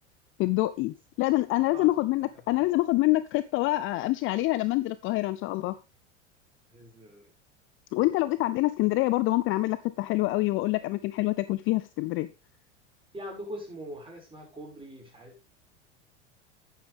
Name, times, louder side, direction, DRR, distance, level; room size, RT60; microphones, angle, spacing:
voice 1, 0.4-5.8 7.9-12.3, left 18 dB, 35° left, 15 dB, 0.5 m, -26 dB
voice 2, 6.7-7.2 13.1-15.5, equal, 15° right, 0 dB, 6.1 m, -42 dB
10.5 x 9.3 x 3.5 m, 0.27 s
figure-of-eight pair, 85°, 36 cm